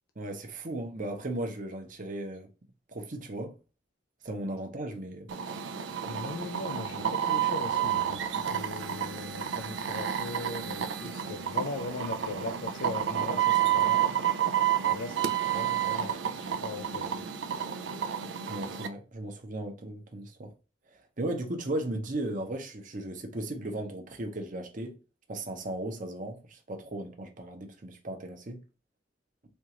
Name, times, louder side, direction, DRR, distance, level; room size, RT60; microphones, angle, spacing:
voice 1, 0.2-2.5 2.9-3.5 4.2-5.3 18.5-20.5 21.2-24.9 25.3-28.6, right 1 dB, 45° right, 0.8 m, -36 dB
sound 1, 5.3-18.9, right 9 dB, 85° right, 0.4 m, -30 dB
voice 2, 6.1-14.0 14.9-17.2, left 3 dB, 80° left, 0.4 m, -39 dB
4.4 x 2.4 x 2.8 m
head